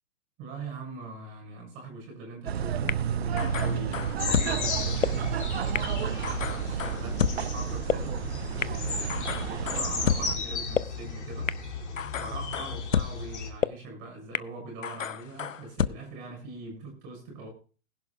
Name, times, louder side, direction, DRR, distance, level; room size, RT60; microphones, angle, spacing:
voice 1, 0.4-5.3 5.8-11.5 12.2-17.5, right 2 dB, 30° right, 6.3 m, -42 dB
sound 1, 2.5-10.4, right 8 dB, 50° right, 0.7 m, -31 dB
sound 2, 2.9-3.0 3.4-4.5 5.0-5.1 5.8-5.9 6.2-7.4 7.9-8.0 8.6-8.7 9.1-10.2 10.8-10.9 11.5-11.6 12.0-13.1 13.6-13.7 14.3-14.4 14.8-15.9, left 7 dB, 75° left, 0.7 m, -29 dB
sound 3, 4.2-13.5, left 4 dB, 60° left, 2.7 m, -35 dB
21.0 x 11.0 x 2.3 m
figure-of-eight pair, 120°, 39 cm